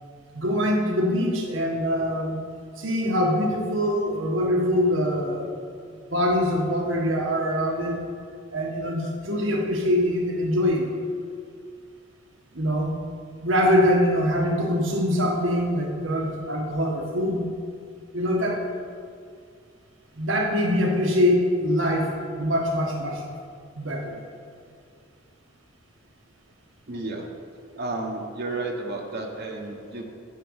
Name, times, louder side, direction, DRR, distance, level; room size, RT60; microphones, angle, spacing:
voice 1, 0.3-2.4 2.8-5.5 6.1-8.0 8.5-10.9 12.5-12.9 13.4-17.5 18.1-18.6 20.2-23.3 23.7-24.2, equal, 70° right, 0 dB, 1.5 m, -23 dB
voice 2, 26.9-27.3 27.8-30.0, right 2 dB, 50° right, 1 dB, 1.2 m, -32 dB
9.1 x 5.8 x 8.1 m, 2.2 s
head